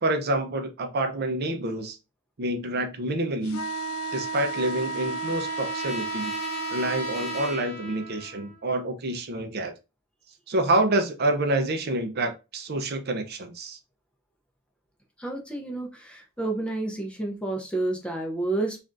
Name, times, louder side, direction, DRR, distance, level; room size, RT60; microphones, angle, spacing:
voice 1, 0.0-2.0 2.4-3.7 4.1-6.3 6.7-9.7 10.5-13.8, right 1 dB, 50° right, 7 dB, 0.6 m, -27 dB
sound 1, 3.4-7.6, right 3 dB, 80° left, 0.5 m, -32 dB
Trumpet, 3.5-8.7, equal, 30° left, 1.2 m, -40 dB
voice 2, 15.2-18.8, right 2 dB, 5° left, 0 dB, 0.6 m, -30 dB
3.3 x 2.5 x 2.5 m, 0.27 s
head